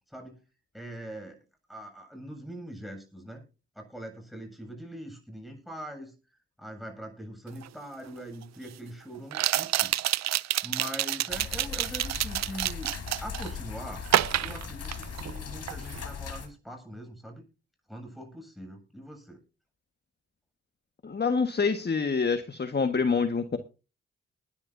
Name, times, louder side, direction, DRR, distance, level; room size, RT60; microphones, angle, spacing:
voice 1, 0.1-0.4 0.7-1.4 1.7-3.4 3.7-6.1 6.6-12.9 13.2-14.0 14.4-17.4 17.9-19.4, equal, ahead, 5 dB, 7.8 m, -42 dB
sound 1, 7.6-7.7 9.3-13.5 14.1-15.4 15.7-16.0, right 13 dB, 60° right, 0.6 m, -28 dB
sound 2, 11.3-16.5, left 6 dB, 55° left, 3.8 m, -39 dB
voice 2, 21.0-23.6, left 5 dB, 35° left, 8 dB, 1.7 m, -26 dB
20.0 x 12.0 x 2.8 m, 0.33 s
hypercardioid pair, 40°, 30 cm